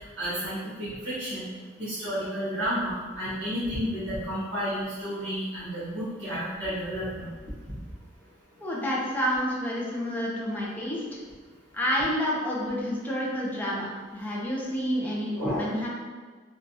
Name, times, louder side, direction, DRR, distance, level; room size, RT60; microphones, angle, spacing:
voice 1, 0.0-1.5 1.8-7.3 7.7-7.8 15.4-15.7, equal, 65° right, -11 dB, 1.1 m, -31 dB
voice 2, 8.6-11.0 11.7-15.9, equal, 10° left, -5 dB, 0.5 m, -29 dB
3.3 x 2.3 x 2.7 m, 1.5 s
head